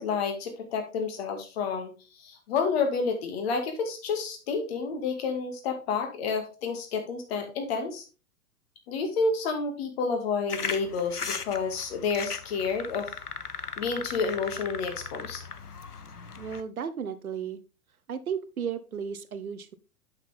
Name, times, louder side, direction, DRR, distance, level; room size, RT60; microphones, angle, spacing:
voice 1, 0.0-8.0 8.9-13.1 13.8-15.4, left 5 dB, 45° left, 5 dB, 2.2 m, -30 dB
sound 1, 10.5-16.6, left 5 dB, 90° left, 0.8 m, -37 dB
voice 2, 16.4-17.6 18.1-19.7, right 7 dB, 70° right, 13 dB, 0.9 m, -34 dB
8.1 x 6.0 x 3.5 m, 0.33 s
figure-of-eight pair, 105°, 44 cm